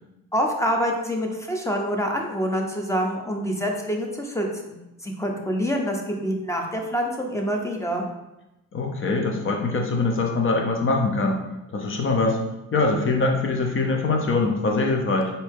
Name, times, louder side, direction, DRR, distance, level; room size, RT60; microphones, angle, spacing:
voice 1, 0.3-4.7 5.0-8.1, equal, 10° left, 1 dB, 0.7 m, -26 dB
voice 2, 8.7-11.4 11.7-12.4 12.7-15.3, left 3 dB, 40° left, 2 dB, 0.8 m, -23 dB
4.2 x 2.8 x 3.5 m, 0.94 s
cardioid pair, 90°, 30 cm